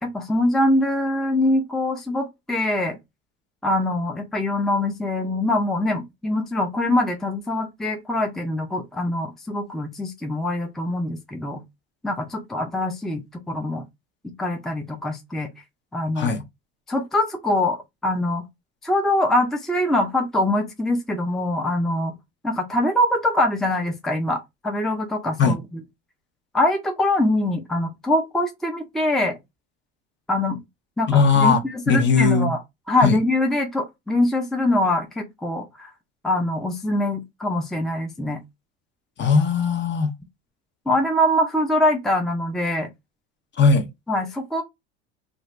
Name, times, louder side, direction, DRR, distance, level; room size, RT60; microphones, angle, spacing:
voice 1, 0.0-3.0 3.6-11.6 12.0-13.2 13.5-13.8 14.2-15.5 15.9-16.3 16.9-18.4 18.8-22.1 22.4-25.6 26.5-29.4 30.3-30.6 31.0-32.6 32.9-35.9 36.2-38.4 40.9-42.9 44.1-44.6, left 1 dB, ahead, 0.5 m, -23 dB
voice 2, 31.1-31.6 31.9-32.5 33.0-33.2 39.2-40.1 43.6-43.9, left 4 dB, 35° left, 0.8 m, -18 dB
2.7 x 2.4 x 3.1 m
hypercardioid pair, 90°, 31 cm